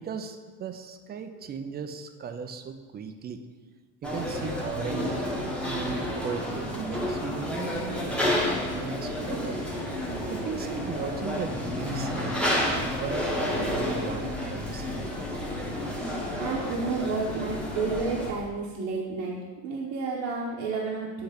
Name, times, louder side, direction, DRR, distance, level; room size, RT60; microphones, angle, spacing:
voice 1, 0.0-3.4 4.0-5.1 5.7-9.6 9.9-10.0 10.3-12.2 12.8-15.1, right 6 dB, 25° right, 8 dB, 0.4 m, -37 dB
sound 1, 4.0-18.3, left 1 dB, 5° left, 1.0 m, -30 dB
sound 2, 12.8-18.5, left 6 dB, 50° left, 1.6 m, -46 dB
voice 2, 16.3-21.2, right 4 dB, 60° right, -4 dB, 1.0 m, -31 dB
7.9 x 2.9 x 5.0 m, 1.4 s
supercardioid pair, 115°, 38 cm